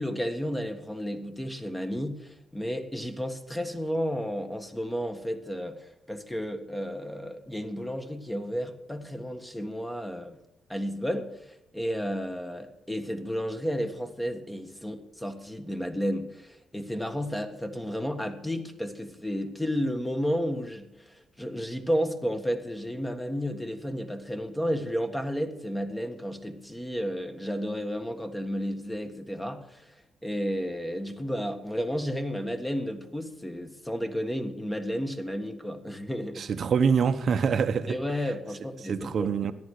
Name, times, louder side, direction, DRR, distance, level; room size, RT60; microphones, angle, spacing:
voice 1, 0.0-10.4 10.7-30.0 30.2-36.5 37.9-39.3, equal, 10° left, 1.5 m, -32 dB
voice 2, 36.4-38.0 38.9-39.5, right 6 dB, 55° right, 1.0 m, -25 dB
14.0 x 10.5 x 6.5 m
cardioid pair, 100°, 0 cm